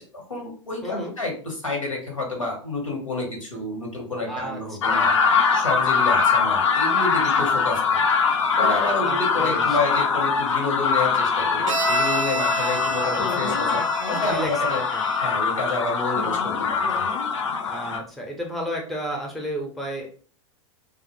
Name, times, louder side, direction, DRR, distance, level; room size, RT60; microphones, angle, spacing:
voice 1, 0.0-5.1 5.5-8.0 8.6-14.8 15.2-17.1, left 2 dB, 80° left, 0 dB, 0.9 m, -29 dB
voice 2, 0.8-1.1 4.3-5.3 9.0-9.8 12.8-12.9 13.5-13.6 14.2-15.0 17.6-20.1, right 1 dB, ahead, 1 dB, 0.5 m, -33 dB
sound 1, 4.8-18.0, left 5 dB, 65° left, 0.4 m, -22 dB
Bowed string instrument, 11.7-15.4, right 1 dB, 80° right, 0.4 m, -29 dB
2.1 x 2.0 x 2.9 m, 0.42 s
figure-of-eight pair, 90°, 16 cm